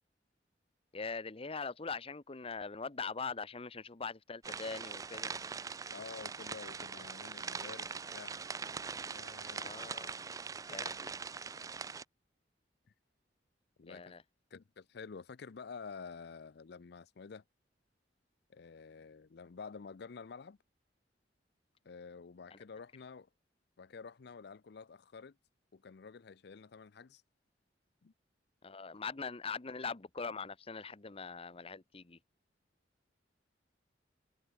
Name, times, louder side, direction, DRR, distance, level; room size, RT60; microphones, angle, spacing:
voice 1, 0.9-5.3 9.6-10.2 10.7-11.1 13.9-14.2 22.5-22.6 28.6-32.2, left 5 dB, 30° left, 0.8 m, -42 dB
sound 1, 4.4-12.0, right 5 dB, 20° right, 0.3 m, -42 dB
voice 2, 5.9-8.3 9.1-9.7 13.8-14.0 14.5-17.4 18.5-20.6 21.8-23.3 23.8-25.4 25.7-27.2 28.0-28.1, left 5 dB, 65° left, 0.5 m, -49 dB
head